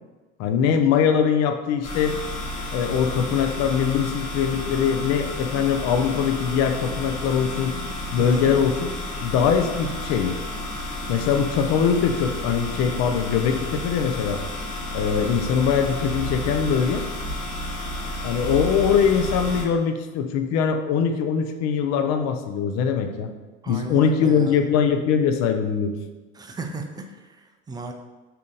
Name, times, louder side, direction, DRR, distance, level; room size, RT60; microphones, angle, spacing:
voice 1, 0.4-2.2 2.7-7.7 8.1-8.9 9.2-10.4 11.1-14.4 14.9-17.0 18.2-23.3 23.7-26.0, left 7 dB, 50° left, 6 dB, 0.6 m, -22 dB
sound 1, 1.8-19.6, left 1 dB, 65° left, 1.2 m, -31 dB
voice 2, 8.2-8.5 23.6-24.6 26.3-27.9, right 3 dB, 10° right, 4 dB, 0.4 m, -35 dB
3.6 x 2.9 x 3.7 m, 1.3 s
hypercardioid pair, 75°, 35 cm